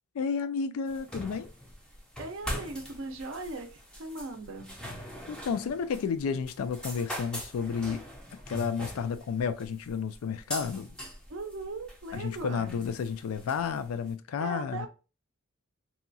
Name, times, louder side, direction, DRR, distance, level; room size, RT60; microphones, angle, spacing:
voice 1, 0.1-1.5 5.3-8.1 8.5-10.9 12.1-14.9, left 6 dB, 75° left, 0.3 m, -31 dB
sound 1, 0.9-14.1, equal, 5° left, 0.5 m, -42 dB
voice 2, 2.2-4.8 11.3-12.7 14.4-14.9, right 3 dB, 60° right, 0.5 m, -39 dB
2.8 x 2.3 x 2.6 m
head